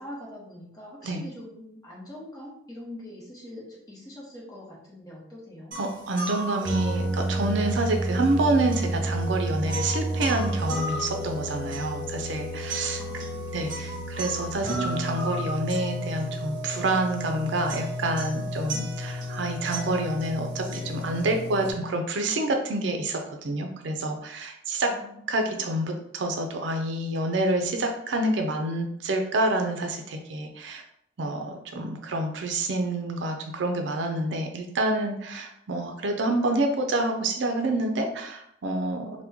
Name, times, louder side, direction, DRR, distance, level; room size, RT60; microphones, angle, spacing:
voice 1, 0.0-5.8 13.0-14.0 24.9-25.3 25.5-25.7, left 1 dB, 20° left, -5 dB, 0.9 m, -43 dB
sound 1, 5.7-21.7, right 1 dB, 45° right, 0.9 m, -31 dB
voice 2, 5.8-13.0 13.5-24.9 25.3-30.8 31.2-39.2, right 2 dB, 70° right, 4 dB, 0.5 m, -28 dB
3.0 x 2.1 x 3.4 m, 0.72 s
head